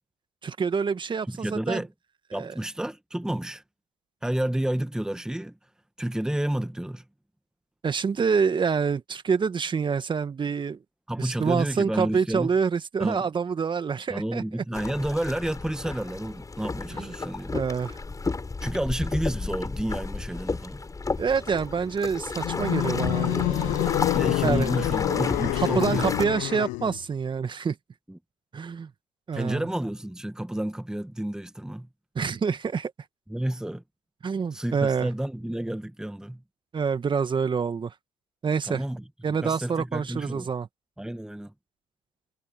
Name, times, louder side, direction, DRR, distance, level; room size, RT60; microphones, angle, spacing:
voice 1, 0.4-1.8 2.3-2.5 7.8-10.8 11.2-14.4 16.9-17.1 17.5-18.0 21.2-24.1 24.4-24.7 25.6-27.8 28.5-28.9 29.3-29.6 32.2-32.9 34.2-35.1 36.7-37.9 38.4-38.8 39.2-40.7, right 5 dB, 35° right, 2.0 m, -27 dB
voice 2, 1.3-1.9 2.3-3.6 4.2-5.6 6.0-7.0 11.1-12.5 13.0-13.3 14.1-17.5 18.6-20.8 24.0-26.2 28.1-28.2 29.3-31.9 33.3-33.8 34.5-36.4 38.7-40.5 41.0-41.5, right 1 dB, 5° right, 1.7 m, -30 dB
sound 1, 14.7-26.2, left 3 dB, 25° left, 7.1 m, -32 dB
sound 2, 22.4-27.0, left 19 dB, 70° left, 1.0 m, -27 dB
hypercardioid pair, 60°, 14 cm